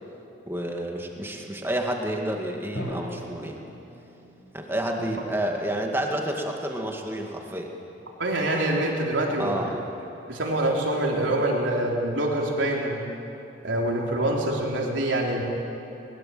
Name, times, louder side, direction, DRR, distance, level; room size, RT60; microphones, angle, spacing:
voice 1, 0.5-3.6 4.5-7.7 9.4-9.8, right 1 dB, 10° right, 1 dB, 2.2 m, -29 dB
Drum, 2.8-4.7, equal, 80° left, 6.6 m, -38 dB
voice 2, 8.2-9.6 10.3-13.0 13.6-15.4, right 1 dB, 80° right, -1 dB, 3.7 m, -25 dB
21.5 x 20.5 x 7.8 m, 2.9 s
head